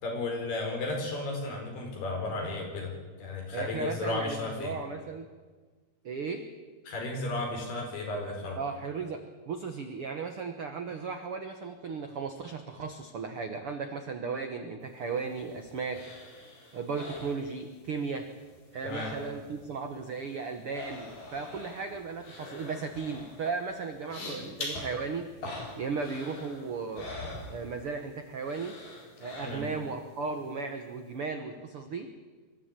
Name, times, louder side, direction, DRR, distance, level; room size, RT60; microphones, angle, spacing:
voice 1, 0.0-2.9 3.2-4.7 6.9-8.6 18.8-19.1 29.4-29.7, left 2 dB, 80° left, 1 dB, 6.6 m, -34 dB
voice 2, 3.5-5.3 6.0-6.4 8.6-16.1 16.7-18.3 18.7-25.3 25.8-27.1 27.5-28.7 29.2-32.1, right 4 dB, 80° right, 6 dB, 1.2 m, -36 dB
sound 1, 15.0-18.0 18.3-19.7 19.9-28.1 28.4-30.0 30.4-30.5, left 2 dB, 55° left, 6.0 m, -44 dB
24.0 x 14.0 x 9.0 m, 1.4 s
omnidirectional pair, 4.5 m